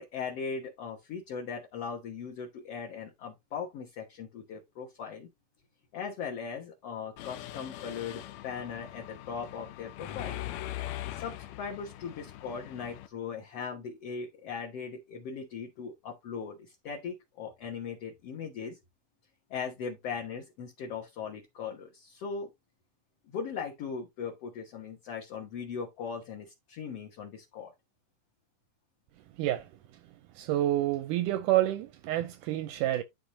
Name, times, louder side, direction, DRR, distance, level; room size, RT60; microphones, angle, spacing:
voice 1, 0.0-5.3 5.9-10.4 11.1-18.8 19.5-22.5 23.3-27.7, left 6 dB, 55° left, 1.9 m, -39 dB
Mechanisms, 7.2-13.1, left 13 dB, 90° left, 1.5 m, -41 dB
voice 2, 30.4-33.0, right 14 dB, 80° right, 1.9 m, -28 dB
11.5 x 4.0 x 2.7 m
omnidirectional pair, 4.0 m